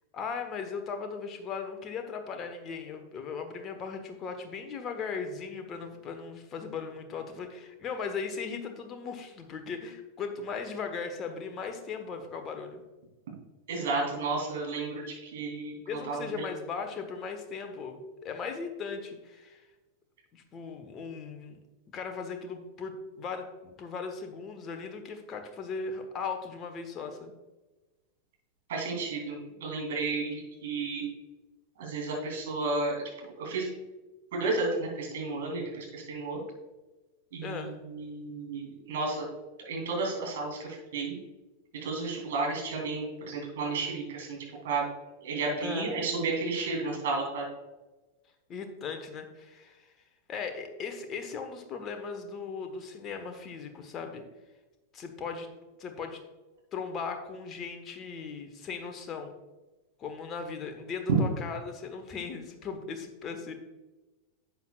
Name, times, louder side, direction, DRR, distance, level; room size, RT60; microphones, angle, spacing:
voice 1, 0.1-12.8 15.9-19.6 20.3-21.6 21.9-27.3 37.4-37.7 45.6-46.1 48.5-49.9 50.3-54.2 54.9-55.5 55.8-56.2 56.7-59.3 60.0-63.5, left 5 dB, 30° left, 6 dB, 1.2 m, -38 dB
voice 2, 13.7-15.8 16.1-16.5 28.7-31.0 31.8-33.7 34.3-36.4 37.3-39.3 39.6-41.2 41.8-44.4 44.6-44.8 45.2-47.4, right 3 dB, 60° right, -1 dB, 2.9 m, -32 dB
11.0 x 7.7 x 2.4 m, 1.1 s
figure-of-eight pair, 90°, 0 cm